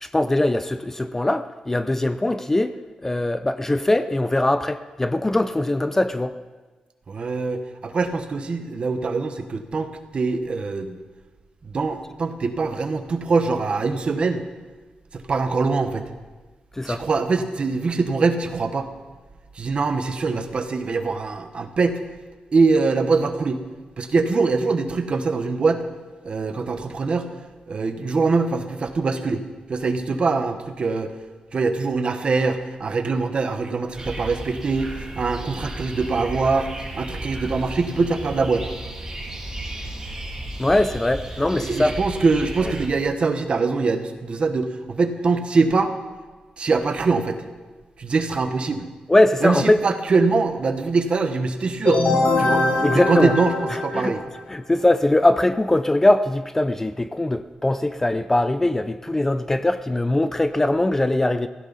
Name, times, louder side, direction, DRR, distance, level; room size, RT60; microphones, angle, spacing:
voice 1, 0.0-6.4 16.8-17.0 40.6-41.9 49.1-49.8 52.8-53.3 53.7-54.1 54.5-61.5, left 1 dB, 15° left, 11 dB, 0.4 m, -21 dB
voice 2, 7.1-11.0 11.6-14.4 15.1-16.0 16.9-18.9 19.5-22.0 22.5-23.6 24.0-25.8 26.2-27.3 27.7-29.4 29.7-31.1 31.5-36.7 36.9-38.7 41.6-45.9 46.6-47.4 48.0-48.9 49.4-52.0 52.4-52.6 52.9-53.6 53.8-54.2, right 4 dB, 45° right, 8 dB, 1.1 m, -23 dB
sound 1, 34.0-42.9, right 1 dB, 25° right, 2.6 m, -34 dB
sound 2, 51.8-54.5, left 2 dB, 55° left, 3.8 m, -22 dB
16.5 x 15.5 x 4.1 m, 1.3 s
wide cardioid pair, 150°, 3 cm